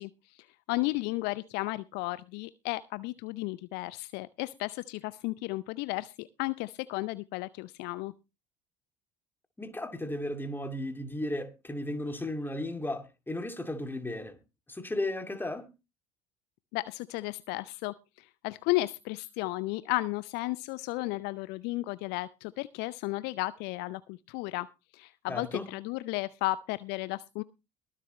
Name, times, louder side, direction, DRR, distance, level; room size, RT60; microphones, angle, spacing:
voice 1, 0.0-8.1 16.7-24.7 24.9-27.4, left 20 dB, 55° left, 0.6 m, -34 dB
voice 2, 9.6-14.4 14.7-15.7 25.3-25.6, left 1 dB, 10° left, 2.5 m, -35 dB
22.5 x 7.6 x 3.1 m
figure-of-eight pair, 65°, 21 cm